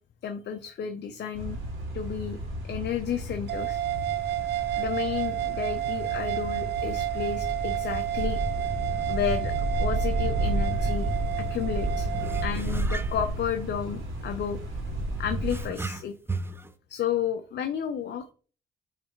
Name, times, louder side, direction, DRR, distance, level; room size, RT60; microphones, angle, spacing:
voice 1, 0.2-1.6 1.9-2.4 2.6-3.8 4.8-8.4 9.1-11.1 11.4-12.1 12.4-14.6 15.2-16.1 16.9-18.3, left 8 dB, 60° left, 6 dB, 0.7 m, -32 dB
sound 1, 1.3-15.7, right 1 dB, 85° right, 2.4 m, -31 dB
sound 2, 3.5-12.5, right 14 dB, 60° right, 0.6 m, -31 dB
sound 3, 10.7-10.8 11.2-11.4 12.1-14.2 15.2-16.7, right 3 dB, 10° right, 0.6 m, -37 dB
7.4 x 3.3 x 4.5 m, 0.39 s
cardioid pair, 90°, 20 cm